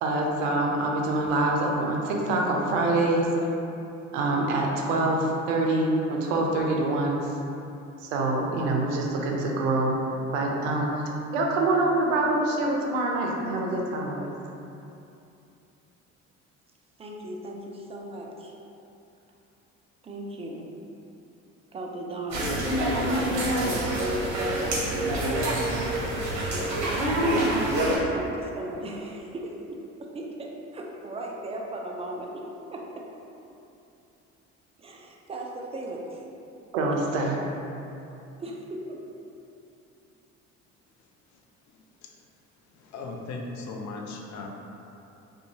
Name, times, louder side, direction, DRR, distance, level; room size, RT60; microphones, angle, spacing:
voice 1, 0.0-3.3 4.1-7.2 8.0-10.0 10.3-14.3 36.7-37.4, right 2 dB, 80° right, 0 dB, 0.5 m, -25 dB
voice 2, 17.0-18.5 20.0-20.7 21.7-22.5 23.2-24.8 26.4-32.4 32.7-33.1 34.8-36.2 38.4-39.0, right 1 dB, 20° right, -1 dB, 0.3 m, -37 dB
sound 1, 22.3-28.0, right 1 dB, 50° right, 0.7 m, -26 dB
voice 3, 41.7-42.1 42.8-44.6, left 3 dB, 50° left, 0 dB, 0.5 m, -38 dB
2.5 x 2.3 x 2.8 m, 2.8 s
hypercardioid pair, 55°, 37 cm